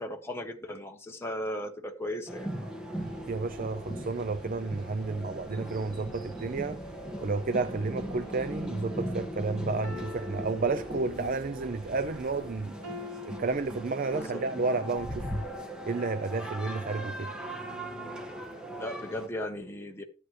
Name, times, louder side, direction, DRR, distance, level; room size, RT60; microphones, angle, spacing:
voice 1, 0.0-2.5 14.2-14.4 18.8-20.0, left 1 dB, 10° left, 1.0 m, -36 dB
sound 1, 2.3-19.3, equal, 5° right, 1.6 m, -39 dB
sound 2, 3.0-12.7, right 1 dB, 20° right, 1.0 m, -51 dB
voice 2, 3.3-6.8 7.2-12.8 13.2-15.3 15.9-17.3, right 3 dB, 45° right, 0.5 m, -31 dB
sound 3, 7.5-8.8 9.8-11.5 12.8-14.5 15.2-15.3, left 4 dB, 85° right, 2.2 m, -46 dB
14.0 x 7.8 x 3.2 m
head